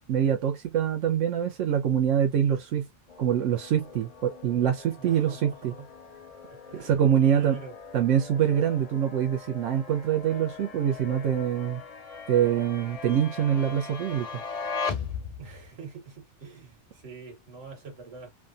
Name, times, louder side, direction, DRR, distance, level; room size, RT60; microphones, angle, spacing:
voice 1, 0.1-2.9 3.2-5.7 6.7-7.6 7.9-11.8 12.3-14.4, right 9 dB, 90° right, 1.0 m, -25 dB
sound 1, 3.1-15.7, left 5 dB, 45° left, 0.5 m, -40 dB
voice 2, 5.0-5.9 6.5-7.8 15.4-18.3, right 5 dB, 55° right, 1.6 m, -44 dB
3.2 x 2.2 x 2.4 m
omnidirectional pair, 1.2 m